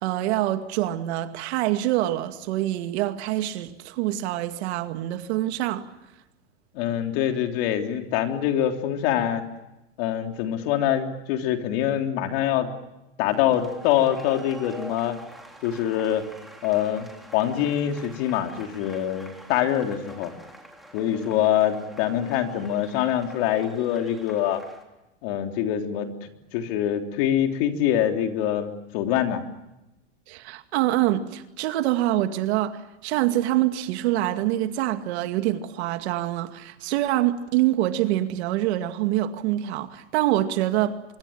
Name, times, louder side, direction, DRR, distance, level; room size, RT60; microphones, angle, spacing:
voice 1, 0.0-5.9 30.3-41.2, right 14 dB, 65° right, 2.3 m, -25 dB
voice 2, 6.7-9.4 10.0-12.7 13.2-15.2 15.6-16.2 16.6-17.1 17.3-20.3 20.9-24.6 25.2-29.4, left 10 dB, 55° left, 3.6 m, -24 dB
sound 1, 13.2-24.8, right 1 dB, ahead, 3.8 m, -46 dB
25.0 x 23.5 x 8.9 m
supercardioid pair, 145°, 36 cm